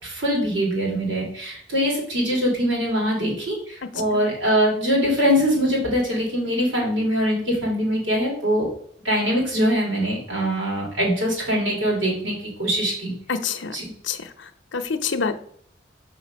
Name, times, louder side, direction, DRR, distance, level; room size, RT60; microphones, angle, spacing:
voice 1, 0.0-8.7 9.0-13.1 13.7-13.8, equal, 85° right, -3 dB, 3.2 m, -23 dB
voice 2, 13.3-13.8 14.0-15.4, left 5 dB, 75° left, 9 dB, 0.7 m, -27 dB
5.8 x 5.0 x 5.2 m, 0.62 s
head